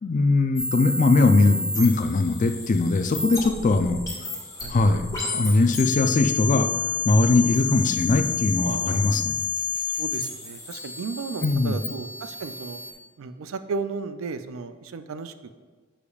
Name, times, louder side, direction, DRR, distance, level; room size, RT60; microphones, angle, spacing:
voice 1, 0.0-4.0 4.7-5.0 5.3-6.7 7.0-9.4 11.4-11.8, left 3 dB, 40° left, 8 dB, 0.4 m, -20 dB
sound 1, 0.6-12.9, left 4 dB, 15° left, 1.4 m, -30 dB
voice 2, 8.6-9.1 10.0-12.8 13.2-15.6, right 4 dB, 80° right, 10 dB, 0.4 m, -34 dB
10.0 x 5.0 x 2.4 m, 1.5 s
head